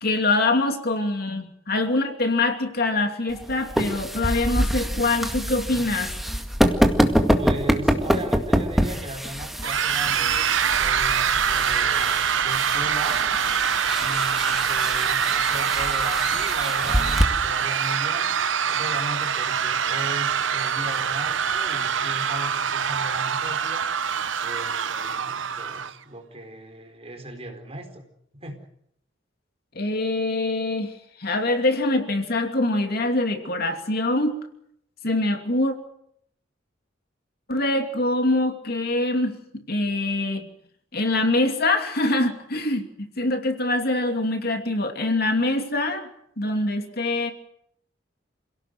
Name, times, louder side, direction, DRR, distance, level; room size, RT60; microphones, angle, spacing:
voice 1, 0.0-6.1 29.7-30.9 31.2-34.4 35.0-35.7 37.5-40.5 40.9-46.1 46.4-47.3, left 2 dB, 55° left, 5 dB, 2.8 m, -24 dB
sound 1, 3.3-17.2, equal, ahead, 2.0 m, -26 dB
voice 2, 7.4-13.2 14.0-18.3 18.7-23.9 24.4-28.0 28.4-28.6, right 1 dB, 30° right, 5 dB, 4.4 m, -37 dB
sound 2, 9.6-25.9, right 7 dB, 80° right, 0.9 m, -24 dB
28.0 x 17.5 x 7.9 m, 0.72 s
head